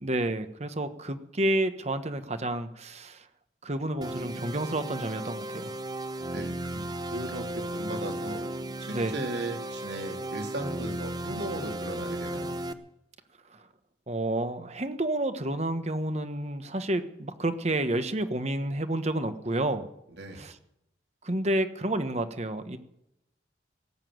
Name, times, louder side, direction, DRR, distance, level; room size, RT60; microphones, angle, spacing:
voice 1, 0.0-3.2 3.6-5.7 8.9-9.1 14.1-19.9 20.3-20.5 21.2-22.8, right 1 dB, 40° right, 10 dB, 1.3 m, -30 dB
sound 1, 4.0-12.7, right 1 dB, 25° right, 0.8 m, -35 dB
voice 2, 6.3-8.4 8.8-12.5 20.1-20.4, right 1 dB, 75° right, 2 dB, 3.5 m, -37 dB
17.5 x 8.4 x 9.3 m, 0.81 s
head